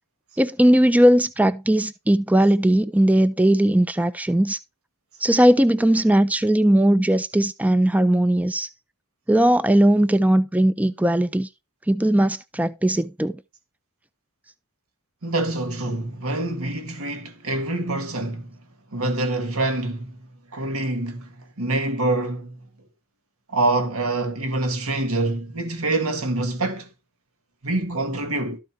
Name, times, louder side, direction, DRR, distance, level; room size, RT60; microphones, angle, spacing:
voice 1, 0.4-4.6 5.2-8.7 9.3-11.5 11.9-13.4, right 1 dB, 5° right, 0.5 m, -18 dB
voice 2, 15.2-18.6 18.9-22.6 23.5-26.9 27.6-28.6, right 2 dB, 80° right, 1.8 m, -26 dB
13.0 x 4.3 x 4.7 m
head